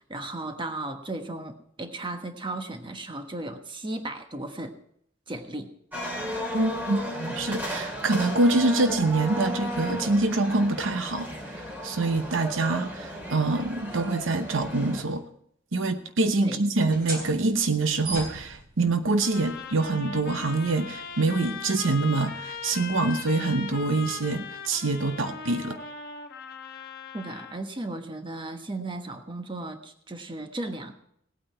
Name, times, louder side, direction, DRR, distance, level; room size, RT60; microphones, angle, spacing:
voice 1, 0.1-4.8 5.3-5.7 16.4-16.6 27.1-30.9, right 2 dB, 25° right, 6 dB, 1.3 m, -35 dB
sound 1, 5.9-15.0, equal, 10° right, 2.9 m, -35 dB
voice 2, 6.5-15.2 15.7-25.8, right 2 dB, 75° right, 9 dB, 0.9 m, -25 dB
sound 2, 16.7-24.0, right 2 dB, 50° right, 3.8 m, -42 dB
sound 3, 19.2-27.6, left 5 dB, 50° left, 1.5 m, -39 dB
18.5 x 8.9 x 4.5 m, 0.69 s
head